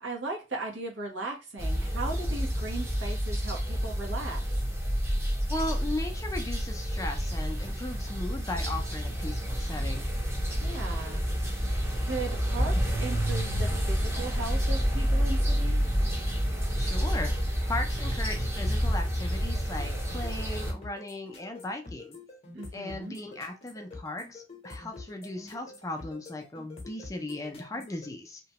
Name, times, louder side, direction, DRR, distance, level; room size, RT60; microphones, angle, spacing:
voice 1, 0.0-4.6 10.6-11.2 12.0-15.9 22.5-23.2, right 2 dB, 75° right, 1.1 m, -37 dB
sound 1, 1.6-20.7, equal, 15° right, 0.7 m, -29 dB
voice 2, 5.5-10.1 16.8-17.3 17.7-22.2 22.7-28.4, left 2 dB, 15° left, 0.4 m, -37 dB
sound 2, 19.8-28.1, left 2 dB, 35° left, 0.8 m, -46 dB
2.9 x 2.2 x 2.8 m
head